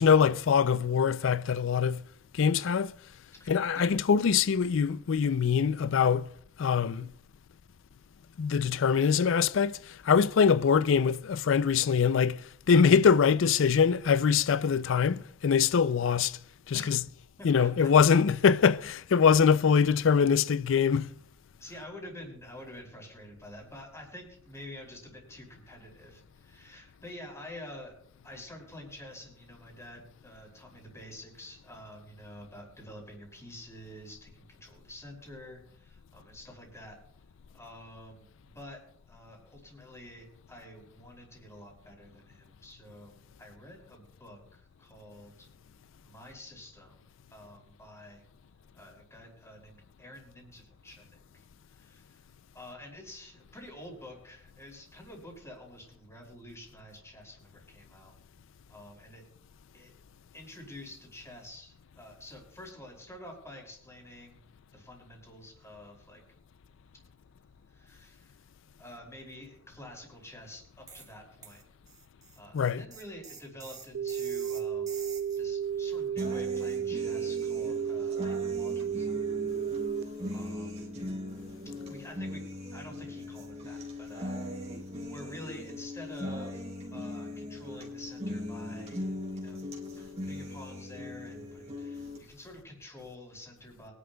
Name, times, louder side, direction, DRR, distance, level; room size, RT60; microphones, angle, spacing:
voice 1, 0.0-2.0 2.3-2.9 3.5-6.3 6.6-7.1 8.4-16.4 16.7-17.1 17.4-21.1 72.5-72.9, left 6 dB, 65° left, 0.4 m, -23 dB
voice 2, 3.4-3.9 16.7-17.0 17.4-17.9 21.6-28.0 28.2-37.0 37.5-38.8 39.1-45.5 46.0-47.0 47.3-48.2 48.7-52.2 52.5-58.1 58.7-59.2 59.7-59.9 60.3-64.3 64.7-66.2 67.7-68.4 68.8-71.6 72.3-79.2 80.3-80.8 81.8-82.4 82.7-84.4 85.1-86.6 86.9-89.0 89.3-89.6 90.0-93.9, left 1 dB, 15° left, 5.0 m, -48 dB
sound 1, 70.9-71.1 71.4-75.4, right 5 dB, 20° right, 1.2 m, -48 dB
sound 2, 73.9-80.0, right 8 dB, 65° right, 0.4 m, -32 dB
sound 3, 76.2-92.2, left 1 dB, 35° right, 3.6 m, -39 dB
23.5 x 11.5 x 2.3 m
head